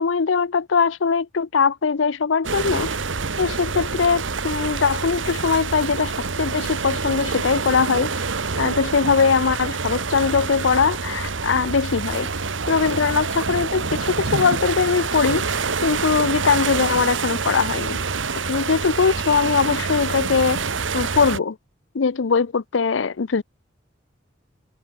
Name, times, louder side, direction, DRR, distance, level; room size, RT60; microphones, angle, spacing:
voice 1, 0.0-2.9 3.4-8.1 8.6-12.3 12.7-18.0 18.5-20.6 20.9-21.6 21.9-23.4, left 5 dB, 85° left, 0.6 m, -21 dB
sound 1, 2.4-21.4, right 4 dB, 90° right, 1.5 m, -27 dB
sound 2, 12.0-21.0, right 4 dB, 70° right, 5.7 m, -39 dB
head